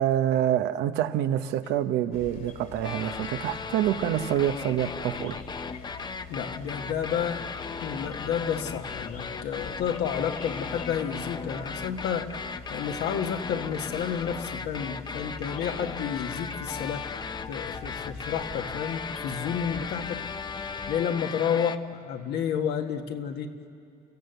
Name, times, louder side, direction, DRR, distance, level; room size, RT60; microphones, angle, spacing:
voice 1, 0.0-5.4, right 11 dB, 85° right, 1.0 m, -26 dB
sound 1, 2.1-21.0, left 5 dB, 60° left, 2.6 m, -45 dB
sound 2, 2.8-21.8, left 5 dB, 25° left, 0.7 m, -37 dB
voice 2, 6.3-7.5 7.8-12.3 12.7-17.1 17.5-20.2 20.9-23.5, left 8 dB, 75° left, 1.7 m, -31 dB
30.0 x 16.0 x 8.0 m
cardioid pair, 110°, 17 cm